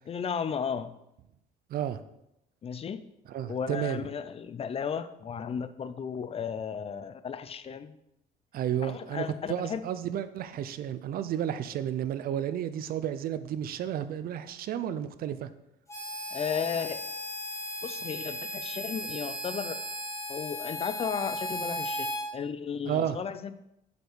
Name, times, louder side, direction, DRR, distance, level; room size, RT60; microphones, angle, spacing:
voice 1, 0.1-0.9 2.6-3.0 3.5-8.0 8.8-9.8 16.3-17.0 17.8-19.8 20.3-22.1 22.3-23.5, left 7 dB, 35° left, 12 dB, 0.5 m, -34 dB
voice 2, 1.7-2.0 3.3-4.0 8.5-15.5 22.9-23.2, right 10 dB, 60° right, 12 dB, 0.6 m, -32 dB
Harmonica, 15.9-22.2, left 1 dB, 15° left, 2.7 m, -36 dB
8.1 x 5.2 x 4.7 m, 0.83 s
cardioid pair, 110°, 17 cm